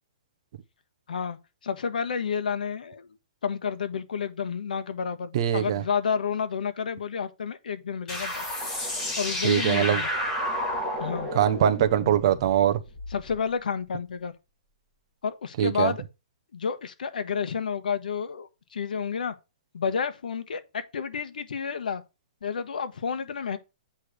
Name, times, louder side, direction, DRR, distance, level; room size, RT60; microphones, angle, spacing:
voice 1, 1.1-3.2 3.4-8.6 9.2-10.1 11.0-11.3 13.1-14.3 15.2-16.0 16.5-19.3 19.7-22.0 22.4-23.6, left 6 dB, 90° left, 1.3 m, -30 dB
voice 2, 5.3-5.8 9.4-10.0 11.3-12.8 15.6-15.9, right 10 dB, 35° right, 0.7 m, -22 dB
sound 1, 8.1-13.4, left 1 dB, 10° left, 1.7 m, -31 dB
8.5 x 3.3 x 6.1 m
hypercardioid pair, 175°, 4 cm